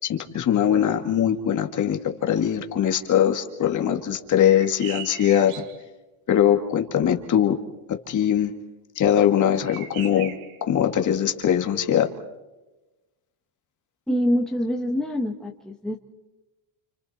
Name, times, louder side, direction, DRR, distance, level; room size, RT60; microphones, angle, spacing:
voice 1, 0.0-5.5 6.3-7.6 7.9-8.5 9.0-10.3 10.6-12.1, left 10 dB, 35° left, 4 dB, 2.1 m, -21 dB
sound 1, 4.4-5.8 9.7-10.6, right 9 dB, 85° right, 2.4 m, -39 dB
voice 2, 14.1-16.0, equal, ahead, 0 dB, 1.4 m, -25 dB
29.5 x 28.5 x 4.3 m, 1.1 s
cardioid pair, 170°, 49 cm